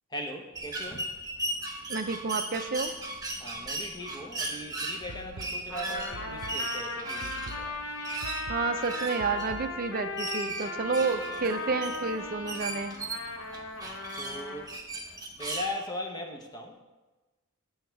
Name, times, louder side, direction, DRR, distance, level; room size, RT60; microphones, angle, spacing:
voice 1, 0.1-1.1 3.4-7.8 13.8-14.7 15.4-16.8, left 1 dB, 20° left, 2 dB, 0.9 m, -39 dB
sound 1, 0.5-15.7, right 2 dB, 15° right, 1.0 m, -37 dB
voice 2, 1.9-2.9 8.5-12.9, right 4 dB, 45° right, 9 dB, 0.5 m, -30 dB
sound 2, 5.1-10.1, right 2 dB, 85° right, 0.6 m, -46 dB
Trumpet, 5.7-14.7, left 2 dB, 75° left, 0.9 m, -37 dB
7.8 x 6.5 x 4.6 m, 1.1 s
head